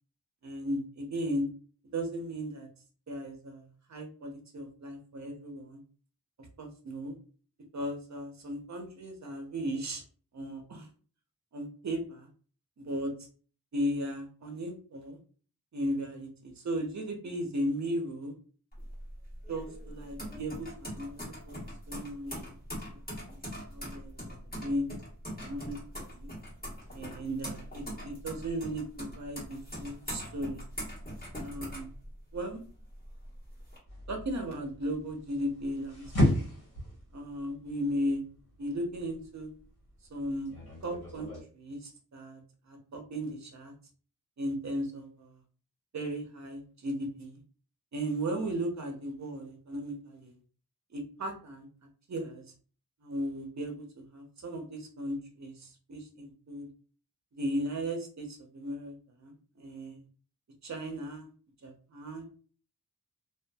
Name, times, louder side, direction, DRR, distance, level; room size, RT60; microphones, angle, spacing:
voice 1, 0.4-1.5 1.9-2.7 3.1-5.8 6.6-7.1 7.7-10.0 10.3-10.9 11.5-12.3 12.8-13.1 13.7-15.2 15.7-18.3 19.5-21.6 21.9-22.5 22.9-24.9 25.4-26.3 26.9-30.6 31.4-31.9 32.3-32.6 34.1-36.4 37.1-38.2 38.6-39.5 40.1-40.5 40.8-42.4 42.7-43.7 44.4-45.4 45.9-47.4 47.9-50.3 50.9-51.7 52.1-52.4 53.0-56.7 57.3-60.0 60.6-61.3 61.6-62.3, equal, 50° right, 3 dB, 0.7 m, -36 dB
sound 1, 18.7-32.5 32.9-33.8, equal, 25° left, 1.2 m, -42 dB
sound 2, 33.9-41.4, left 1 dB, 85° left, 1.3 m, -34 dB
2.5 x 2.5 x 2.3 m, 0.40 s
wide cardioid pair, 65°, 36 cm